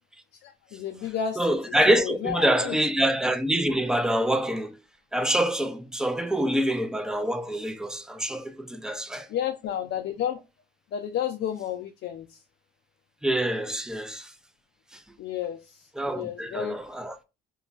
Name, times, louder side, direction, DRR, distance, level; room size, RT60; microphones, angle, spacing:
voice 1, 0.4-1.6 1.9-2.7 9.3-10.4 10.9-12.4 15.2-15.9 16.1-16.8, left 9 dB, 65° left, 0.4 m, -31 dB
voice 2, 1.4-4.7 5.1-9.3 13.2-14.3 16.0-17.2, right 1 dB, 5° right, 0.4 m, -26 dB
2.9 x 2.3 x 2.4 m
cardioid pair, 90°, 20 cm